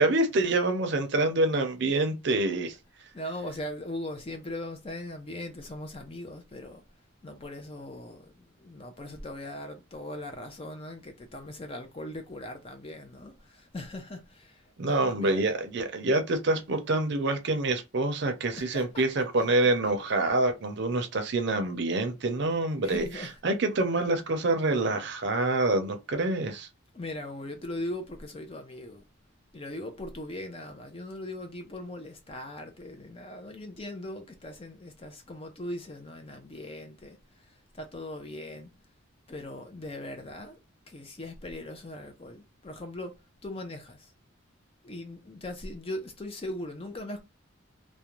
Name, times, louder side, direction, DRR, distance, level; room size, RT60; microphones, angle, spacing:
voice 1, 0.0-2.7 14.8-26.7, right 2 dB, 55° right, 0.6 m, -26 dB
voice 2, 3.1-6.8 7.2-15.5 18.6-19.9 22.8-23.4 26.9-29.0 29.5-38.7 39.3-40.6 40.9-43.1 43.4-44.1 44.8-47.2, left 1 dB, 25° left, 0.4 m, -40 dB
2.5 x 2.1 x 2.9 m
head